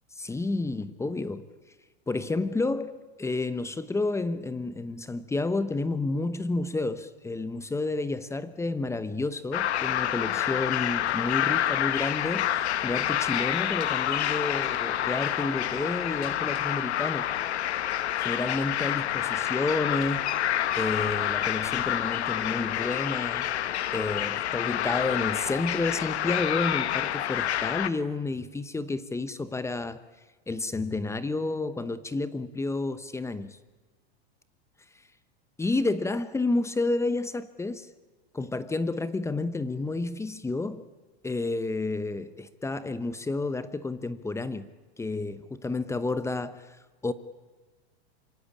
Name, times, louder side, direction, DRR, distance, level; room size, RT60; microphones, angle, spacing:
voice 1, 0.2-1.5 2.1-17.3 18.2-20.2 20.7-23.6 23.9-30.0 30.5-33.6 35.6-37.9 38.3-40.8 41.2-44.7 45.0-46.7 47.0-47.1, left 3 dB, 10° left, 0.9 m, -30 dB
sound 1, 9.5-27.9, left 11 dB, 85° left, 1.4 m, -28 dB
26.0 x 23.5 x 8.5 m
supercardioid pair, 130°, 32 cm